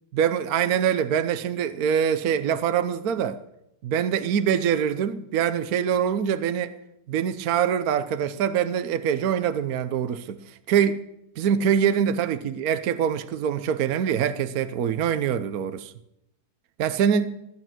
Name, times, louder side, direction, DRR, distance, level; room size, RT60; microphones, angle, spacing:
voice 1, 0.1-3.4 3.8-6.7 7.1-10.4 10.7-11.0 11.4-15.9 16.8-17.3, right 8 dB, 60° right, 1.1 m, -24 dB
16.5 x 9.2 x 6.1 m
omnidirectional pair, 2.0 m